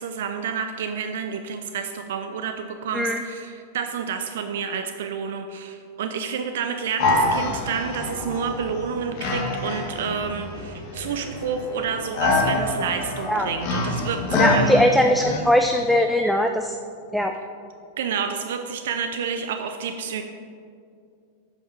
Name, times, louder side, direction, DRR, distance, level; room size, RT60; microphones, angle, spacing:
voice 1, 0.0-14.8 18.0-20.2, right 6 dB, 65° right, 7 dB, 0.5 m, -29 dB
sound 1, 7.0-15.4, left 2 dB, 50° left, 1.6 m, -26 dB
voice 2, 14.4-16.7 17.1-17.3, equal, ahead, 4 dB, 0.5 m, -20 dB
8.3 x 5.5 x 5.7 m, 2.4 s
hypercardioid pair, 95°, 0 cm